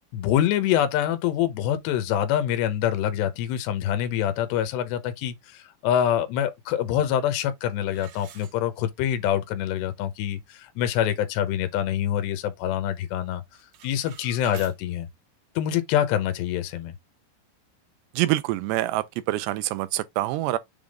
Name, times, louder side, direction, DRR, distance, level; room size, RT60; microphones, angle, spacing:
voice 1, 0.1-13.4 13.8-15.1 15.6-16.9, left 10 dB, 80° left, 3.1 m, -25 dB
sound 1, 7.9-9.2 9.6-9.7 10.3-10.4 10.8-11.1 11.5-12.6 12.9-13.2 13.5-14.8, right 9 dB, 70° right, 3.3 m, -48 dB
voice 2, 18.1-20.6, right 16 dB, 90° right, 2.8 m, -26 dB
7.2 x 3.6 x 3.6 m
omnidirectional pair, 4.9 m